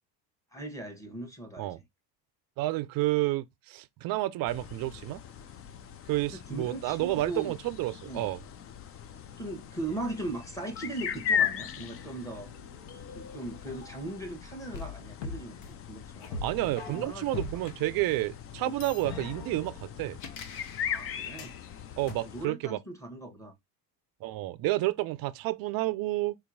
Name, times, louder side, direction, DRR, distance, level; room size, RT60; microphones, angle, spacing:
voice 1, 0.5-1.7 6.3-7.6 8.0-8.3 9.4-12.5 13.1-17.5 20.9-21.6 22.2-23.5, right 2 dB, 5° left, 1.1 m, -39 dB
voice 2, 2.6-5.2 6.1-8.4 16.4-20.2 22.0-22.8 24.2-26.4, right 17 dB, 45° right, 0.5 m, -30 dB
sound 1, 4.5-22.5, left 8 dB, 30° left, 0.4 m, -38 dB
sound 2, 10.8-14.3 14.7-17.7 18.7-21.6 22.1-22.2, left 3 dB, 60° left, 1.0 m, -43 dB
3.9 x 2.8 x 2.6 m
hypercardioid pair, 80°, 50 cm